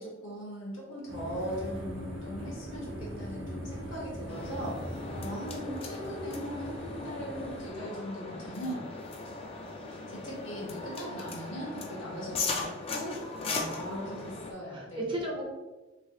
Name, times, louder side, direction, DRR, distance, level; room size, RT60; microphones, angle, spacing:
voice 1, 0.0-8.8 9.9-13.2 13.4-15.0, equal, 75° left, -3 dB, 1.2 m, -39 dB
sound 1, 1.1-7.7, equal, 80° right, 0.7 m, -41 dB
sound 2, 4.3-14.5, left 3 dB, 30° left, 0.3 m, -38 dB
voice 2, 5.1-5.6 13.6-14.2 14.7-15.4, right 1 dB, 25° right, -1 dB, 0.6 m, -38 dB
3.2 x 3.1 x 2.8 m, 1.2 s
head